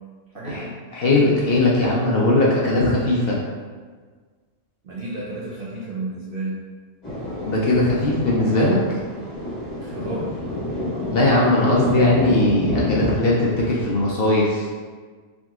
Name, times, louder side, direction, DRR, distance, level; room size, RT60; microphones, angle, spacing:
voice 1, 0.3-0.7 4.8-6.6 9.8-10.3, right 2 dB, 60° right, -5 dB, 0.6 m, -32 dB
voice 2, 0.9-3.4 7.4-8.8 11.1-14.7, left 2 dB, 60° left, -4 dB, 0.7 m, -19 dB
Thunder, 7.0-14.1, left 1 dB, 35° left, 1.6 m, -29 dB
3.5 x 2.8 x 2.3 m, 1.5 s
omnidirectional pair, 1.3 m